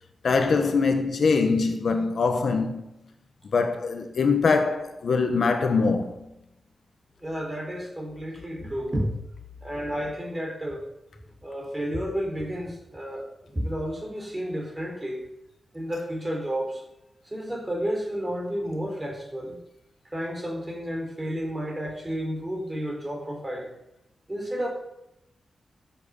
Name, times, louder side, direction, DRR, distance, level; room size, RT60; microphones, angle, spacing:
voice 1, 0.2-2.9 3.5-6.3 15.9-16.0, left 4 dB, 60° left, 1.4 m, -23 dB
voice 2, 7.2-9.1 9.6-10.8 11.4-15.2 15.7-16.8 17.2-19.6 20.1-23.7 24.3-24.7, equal, 15° right, 4.4 m, -31 dB
15.5 x 8.0 x 7.3 m
wide cardioid pair, 145°, 0 cm